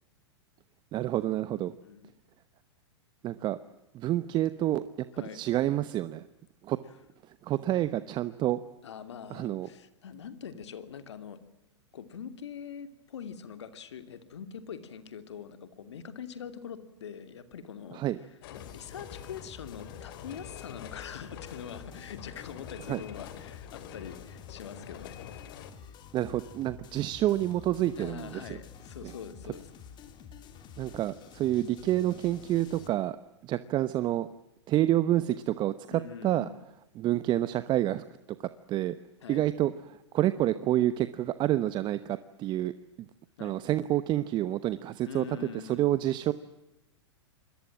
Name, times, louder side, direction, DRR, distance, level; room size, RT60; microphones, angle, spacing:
voice 1, 0.9-1.7 3.2-3.6 3.9-4.8 5.3-6.3 6.6-6.8 7.4-8.6 9.3-9.7 17.9-18.2 22.9-23.0 26.1-28.6 29.0-29.1 30.8-33.2 33.4-34.3 34.7-36.5 37.0-38.0 38.7-39.0 39.3-42.7 43.4-46.3, right 13 dB, 30° right, 14 dB, 1.0 m, -28 dB
voice 2, 1.8-2.1 5.1-5.4 8.8-11.4 11.9-18.0 18.5-25.2 28.0-29.7 35.9-36.7 39.2-39.5 43.4-43.6 45.1-45.8, left 7 dB, 70° left, 10 dB, 2.8 m, -43 dB
sound 1, 18.4-25.7, left 10 dB, 55° left, 2.7 m, -46 dB
sound 2, 18.6-32.9, left 7 dB, 30° left, 3.2 m, -49 dB
27.5 x 22.0 x 7.5 m, 0.92 s
hypercardioid pair, 110°, 15 cm